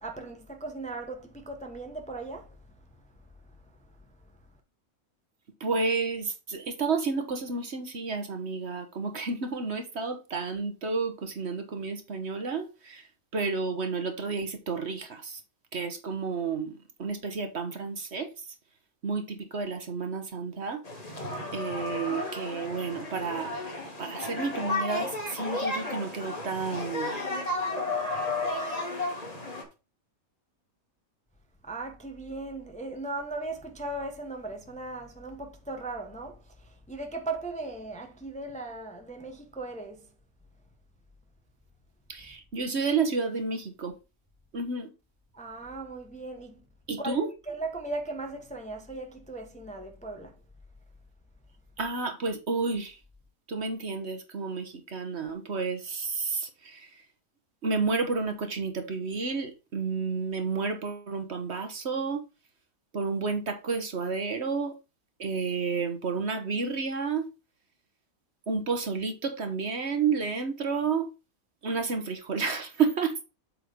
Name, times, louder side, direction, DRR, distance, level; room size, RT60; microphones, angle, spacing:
voice 1, 0.0-2.6 31.6-40.1 45.3-46.6 47.0-50.4, right 2 dB, 5° left, 0.8 m, -38 dB
voice 2, 5.6-13.0 13.3-15.4 15.7-18.3 19.0-20.8 21.5-23.5 24.0-27.2 42.1-44.0 44.5-44.9 46.9-47.3 51.8-53.0 53.5-56.9 57.6-62.2 62.9-64.8 65.2-67.3 68.5-71.1 71.6-73.2, right 4 dB, 50° right, 1.4 m, -31 dB
sound 1, 20.8-29.6, left 2 dB, 25° left, 2.0 m, -33 dB
8.1 x 3.8 x 5.0 m
omnidirectional pair, 1.5 m